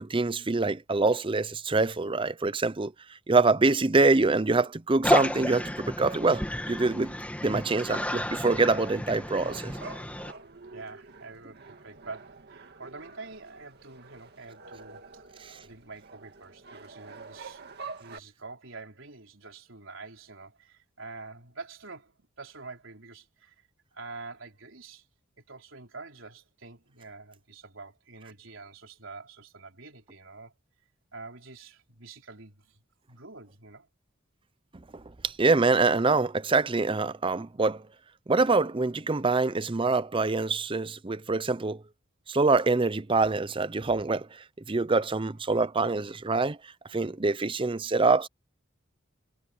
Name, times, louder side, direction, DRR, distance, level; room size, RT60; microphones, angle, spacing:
voice 1, 0.0-2.9 3.3-7.2 7.4-9.8 15.4-15.6 35.2-37.8 38.3-41.8 42.3-46.6 46.9-48.3, right 3 dB, 25° right, 0.6 m, -25 dB
sound 1, 5.0-10.3, left 1 dB, 5° left, 2.3 m, -31 dB
sound 2, 9.4-18.2, right 4 dB, 55° right, 2.2 m, -47 dB
voice 2, 10.7-17.7 18.0-25.1 25.5-30.5 31.1-32.8 33.1-33.9, right 3 dB, 75° right, 3.9 m, -46 dB
head